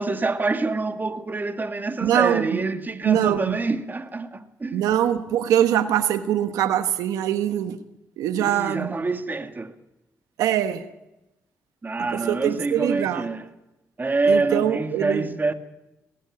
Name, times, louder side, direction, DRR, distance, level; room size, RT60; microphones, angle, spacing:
voice 1, 0.0-4.9 8.4-9.7 11.8-13.5 14.0-15.5, right 3 dB, 30° right, 2.1 m, -26 dB
voice 2, 2.0-2.6 3.0-3.6 4.7-7.8 8.2-9.0 10.4-10.8 12.1-13.3 14.3-15.3, right 11 dB, 90° right, 1.2 m, -23 dB
19.5 x 15.0 x 9.9 m
supercardioid pair, 60°, 6 cm